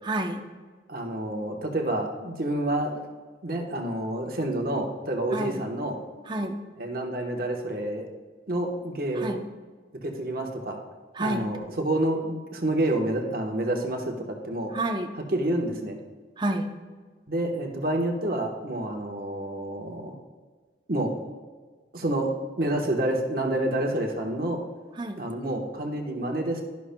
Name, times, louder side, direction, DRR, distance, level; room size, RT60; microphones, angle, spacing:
voice 1, 0.0-0.4 5.3-5.7 6.3-6.6 9.2-9.4 11.1-11.4 14.7-15.1 16.4-16.7 25.0-25.2, right 1 dB, 25° right, 4 dB, 0.7 m, -29 dB
voice 2, 0.9-3.0 3.4-6.0 6.8-8.1 8.5-9.3 10.0-10.8 11.2-14.7 15.3-16.0 17.3-20.1 20.9-21.1 21.9-22.3 22.6-24.6 25.2-26.6, right 1 dB, 50° right, 2 dB, 1.1 m, -28 dB
11.5 x 11.0 x 2.2 m, 1.5 s
head